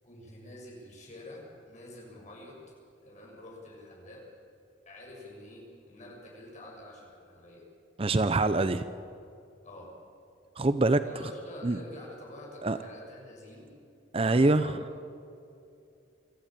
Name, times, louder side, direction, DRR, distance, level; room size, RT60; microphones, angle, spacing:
voice 1, 0.0-2.7 3.0-4.2 4.9-7.7 9.6-9.9 11.0-13.7 14.2-15.1, left 1 dB, 40° left, -2 dB, 6.9 m, -47 dB
voice 2, 8.0-8.9 10.6-11.0 11.6-11.8 12.6-12.8 14.1-14.7, right 2 dB, 30° right, 11 dB, 0.6 m, -24 dB
25.0 x 14.5 x 9.0 m, 2.6 s
head